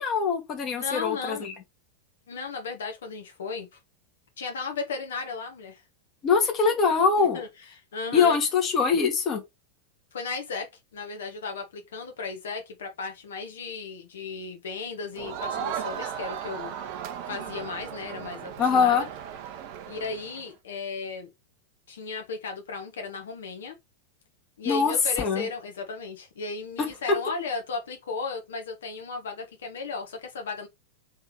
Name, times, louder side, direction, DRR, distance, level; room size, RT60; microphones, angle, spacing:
voice 1, 0.0-1.5 6.2-7.4 8.1-9.4 18.6-19.0 24.6-25.5, left 5 dB, 30° left, 1.4 m, -23 dB
voice 2, 0.7-1.5 2.3-3.7 4.4-5.8 7.3-7.5 7.9-8.4 10.1-16.7 17.3-19.1 19.8-21.3 21.9-23.8 24.6-30.7, left 4 dB, 65° left, 1.0 m, -35 dB
Crowd, 15.1-20.5, right 8 dB, 45° right, 0.6 m, -36 dB
3.5 x 3.2 x 3.1 m
figure-of-eight pair, 90°, 0 cm